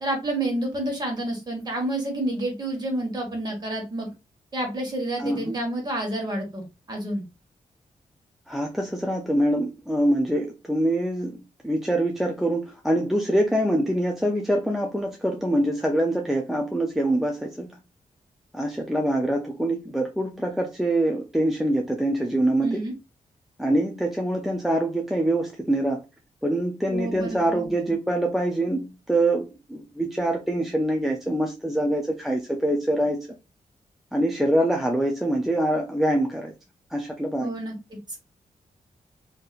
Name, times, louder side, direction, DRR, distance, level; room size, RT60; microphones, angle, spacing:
voice 1, 0.0-4.1 4.5-6.6 6.9-7.2 22.6-22.9 26.9-27.7 37.4-37.7, right 1 dB, 30° right, 1.4 m, -29 dB
voice 2, 5.2-5.6 8.5-17.8 18.5-22.8 23.6-26.0 26.4-33.2 34.1-36.5 36.9-37.5, right 1 dB, ahead, 0.4 m, -24 dB
3.9 x 2.7 x 2.4 m
wide cardioid pair, 175°, 13 cm